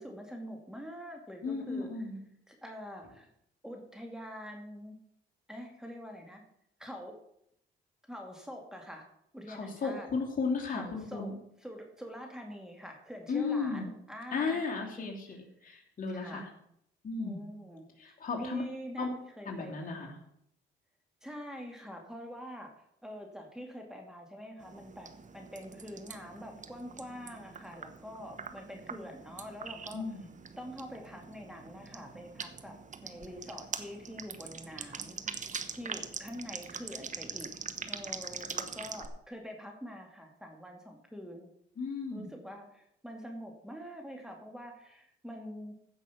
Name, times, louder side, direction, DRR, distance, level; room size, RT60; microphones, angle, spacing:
voice 1, 0.0-2.0 2.5-3.3 3.6-5.0 5.5-6.4 6.8-7.2 8.1-9.0 9.3-10.1 10.7-11.3 11.6-15.4 16.1-16.5 17.2-20.1 21.2-22.7 23.0-30.0 30.6-37.6 37.9-41.5 42.1-45.8, equal, 5° right, 2 dB, 2.6 m, -45 dB
voice 2, 1.4-2.2 9.5-11.3 13.3-13.8 14.3-15.4 15.6-16.5 17.0-17.4 18.0-18.6 19.0-19.1 19.5-20.1 29.9-30.3 41.8-42.3, left 4 dB, 45° left, 0 dB, 3.0 m, -34 dB
sound 1, 24.6-39.1, right 5 dB, 40° right, 1.2 m, -43 dB
15.5 x 6.1 x 6.0 m, 0.72 s
cardioid pair, 90°, 20 cm